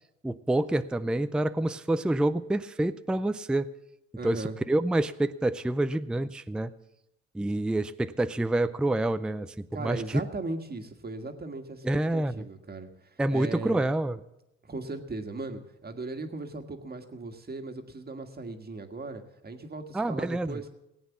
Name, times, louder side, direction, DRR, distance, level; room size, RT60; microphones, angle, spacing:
voice 1, 0.2-3.7 4.2-6.7 7.3-10.2 11.8-12.4 13.2-14.2 19.9-20.6, right 1 dB, 5° right, 12 dB, 0.4 m, -27 dB
voice 2, 4.2-4.6 9.7-13.8 14.6-20.7, right 2 dB, 30° right, 6 dB, 1.7 m, -38 dB
17.5 x 8.7 x 7.2 m, 0.86 s
cardioid pair, 90°, 30 cm